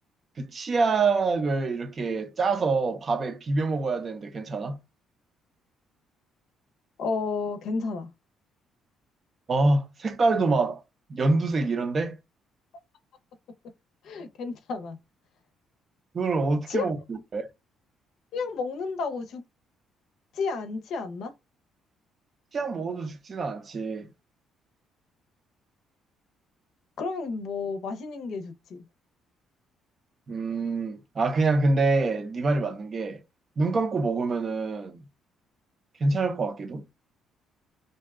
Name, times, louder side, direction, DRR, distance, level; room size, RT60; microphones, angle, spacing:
voice 1, 0.4-4.8 9.5-10.8 11.1-12.2 16.1-17.5 22.5-24.1 30.3-33.2 33.6-35.0 36.0-36.8, right 3 dB, 35° right, 0.6 m, -26 dB
voice 2, 7.0-8.1 14.0-15.0 16.7-16.8 18.3-19.4 20.3-21.3 27.0-28.8, left 4 dB, 65° left, 0.6 m, -31 dB
2.6 x 2.3 x 3.4 m
cardioid pair, 120°, 0 cm